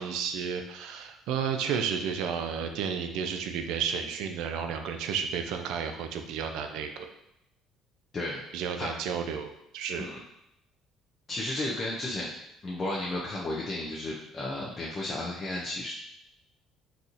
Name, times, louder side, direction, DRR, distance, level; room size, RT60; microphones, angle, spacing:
voice 1, 0.0-7.1 8.5-10.1, right 7 dB, 75° right, 6 dB, 0.4 m, -32 dB
voice 2, 8.1-8.9 10.0-10.2 11.3-12.3 12.6-15.9, left 1 dB, 20° left, -4 dB, 0.4 m, -33 dB
3.9 x 2.8 x 2.5 m, 0.82 s
cardioid pair, 175°, 0 cm